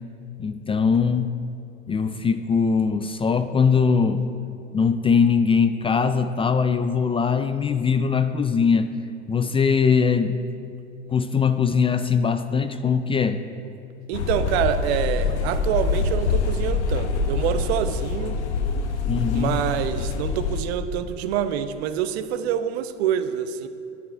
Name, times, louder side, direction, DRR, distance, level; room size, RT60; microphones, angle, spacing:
voice 1, 0.4-1.3 1.9-4.3 4.7-8.9 9.3-10.4 11.1-13.4 19.1-19.6, left 6 dB, 15° left, 10 dB, 0.4 m, -21 dB
sound 1, 14.1-20.6, left 4 dB, 75° left, 1.0 m, -25 dB
voice 2, 14.1-18.4 19.3-23.7, right 9 dB, 65° right, 11 dB, 0.8 m, -26 dB
11.0 x 11.0 x 4.5 m, 2.5 s
hypercardioid pair, 85°, 34 cm